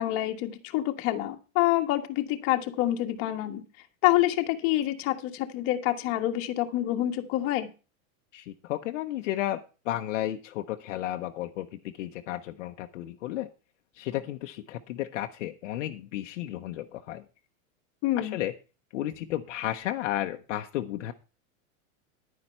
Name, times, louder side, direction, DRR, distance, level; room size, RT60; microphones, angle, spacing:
voice 1, 0.0-3.6 4.0-7.7 18.0-18.4, left 14 dB, 35° left, 5 dB, 1.5 m, -27 dB
voice 2, 8.3-11.7 12.0-13.5 14.0-17.2 18.2-18.5 18.9-21.1, left 13 dB, 60° left, 5 dB, 1.1 m, -33 dB
11.0 x 9.8 x 4.4 m, 0.32 s
supercardioid pair, 165°, 41 cm